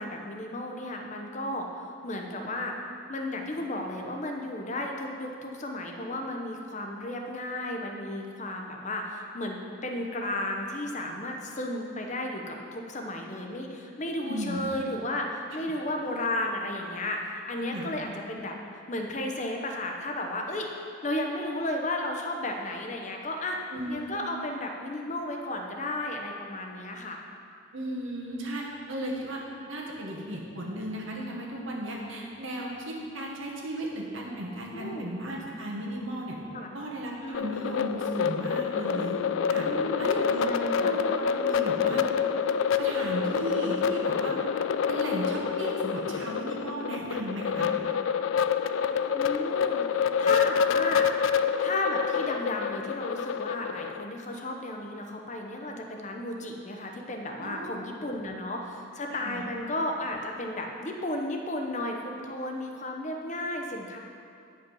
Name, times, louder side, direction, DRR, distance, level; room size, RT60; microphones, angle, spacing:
voice 1, 0.0-2.8 3.1-17.2 17.5-18.5 18.9-20.7 21.0-23.6 23.9-27.2 34.7-35.1 36.5-36.7 37.2-37.5 39.6-40.1 40.4-40.9 49.1-51.1 51.6-64.0, left 1 dB, 35° left, 2 dB, 0.8 m, -33 dB
voice 2, 14.2-14.6 17.7-17.9 23.7-24.1 27.7-29.4 29.7-36.4 36.7-39.2 39.5-39.7 40.0-40.5 40.8-42.0 42.8-44.3 44.9-47.7 57.4-58.0 59.1-59.4, right 1 dB, 85° right, -2 dB, 1.5 m, -35 dB
sound 1, 37.3-54.0, left 7 dB, 80° left, 0.3 m, -27 dB
9.6 x 5.4 x 5.4 m, 2.4 s
head